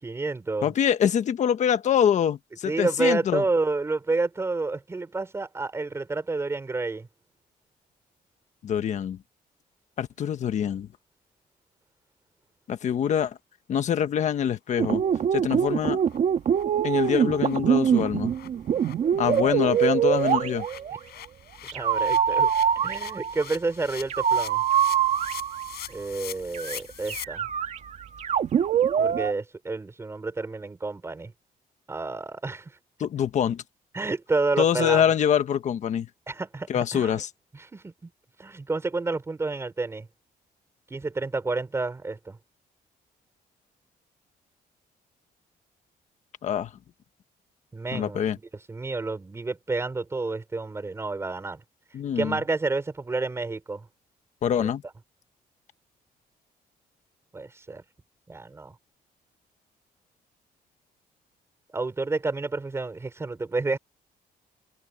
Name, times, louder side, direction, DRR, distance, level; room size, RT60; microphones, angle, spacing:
voice 1, 0.0-0.7 2.6-7.1 21.7-22.5 22.7-24.6 25.9-27.5 29.0-31.3 31.9-32.7 33.9-35.0 36.3-37.2 37.7-38.1 38.4-40.1 40.9-42.4 47.7-48.2 48.7-51.6 52.2-53.8 54.6-54.7 57.3-57.8 58.3-58.7 61.7-63.8, right 3 dB, 15° right, 4.7 m, -29 dB
voice 2, 0.6-3.4 8.6-9.2 10.0-10.9 12.7-13.4 13.7-15.0 15.3-16.0 16.8-18.3 19.2-20.6 33.0-33.6 34.6-36.1 36.7-37.3 46.4-46.7 47.9-48.4 51.9-52.4 54.4-54.8, left 8 dB, 50° left, 1.4 m, -25 dB
sound 1, 14.3-14.4 14.7-14.8 15.1-15.3 15.6-15.7 16.0-16.2 16.5-16.6 17.0-17.1 17.3-27.2, left 13 dB, 80° left, 7.4 m, -44 dB
sound 2, 14.8-21.0 21.7-23.5 24.1-25.8 26.5-26.8 27.1-29.3, right 8 dB, 45° right, 2.2 m, -24 dB
cardioid pair, 170°, 16 cm